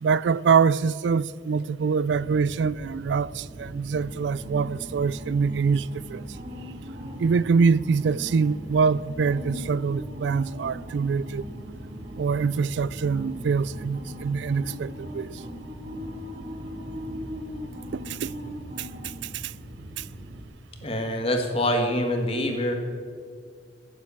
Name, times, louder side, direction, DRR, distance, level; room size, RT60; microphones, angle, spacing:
voice 1, 0.0-6.2 7.2-11.4 12.2-15.3 17.9-18.3 18.8-19.5 20.0-20.1, right 5 dB, 75° right, 0.3 m, -24 dB
sound 1, 2.1-20.4, equal, 45° right, 1.8 m, -39 dB
voice 2, 20.8-22.8, equal, 35° left, 1.6 m, -25 dB
16.0 x 7.6 x 8.6 m
head